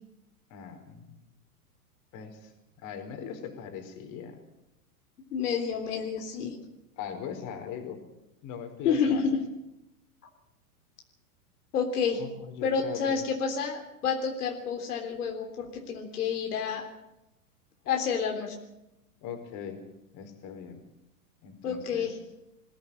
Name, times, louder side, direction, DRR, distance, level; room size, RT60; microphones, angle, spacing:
voice 1, 0.5-1.1 2.1-2.5 2.8-4.4 7.0-8.0 8.4-9.2 12.1-13.2 19.2-19.8 20.1-20.8 21.4-22.1, left 7 dB, 40° left, 6 dB, 4.7 m, -40 dB
voice 2, 5.3-6.6 8.8-9.4 11.7-12.2 12.6-16.9 17.9-18.6 21.6-22.2, left 6 dB, 75° left, 3 dB, 3.6 m, -29 dB
21.0 x 15.5 x 8.8 m, 0.90 s
hypercardioid pair, 120°, 46 cm